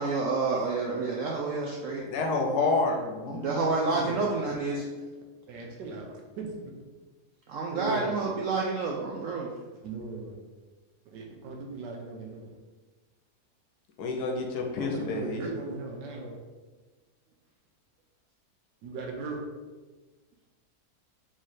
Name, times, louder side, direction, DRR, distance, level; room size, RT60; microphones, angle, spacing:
voice 1, 0.0-2.0 3.3-4.9 7.5-9.5, right 3 dB, 70° right, -2 dB, 0.7 m, -29 dB
voice 2, 2.0-3.5 14.0-15.4, left 3 dB, 70° left, 2 dB, 1.1 m, -28 dB
voice 3, 5.5-6.5 7.7-8.1 9.8-10.3 11.1-12.5 14.6-16.4 18.8-19.4, right 3 dB, 90° right, 0 dB, 1.4 m, -38 dB
3.7 x 3.2 x 4.1 m, 1.3 s
omnidirectional pair, 1.8 m